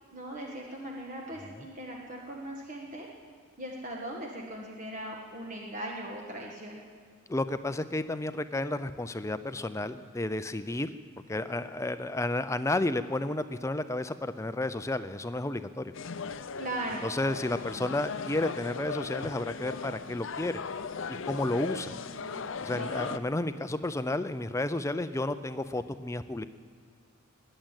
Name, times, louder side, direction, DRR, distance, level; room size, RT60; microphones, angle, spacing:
voice 1, 0.1-3.1 3.6-6.8 16.6-17.0 21.9-22.4 22.8-23.0, right 1 dB, 40° right, -1 dB, 1.5 m, -39 dB
voice 2, 7.3-10.9 11.3-15.9 17.0-20.6 21.1-22.0 22.6-26.4, left 2 dB, 15° left, 12 dB, 0.5 m, -32 dB
sound 1, 15.9-23.2, left 5 dB, 65° left, 0.6 m, -38 dB
20.5 x 7.7 x 8.9 m, 2.1 s
head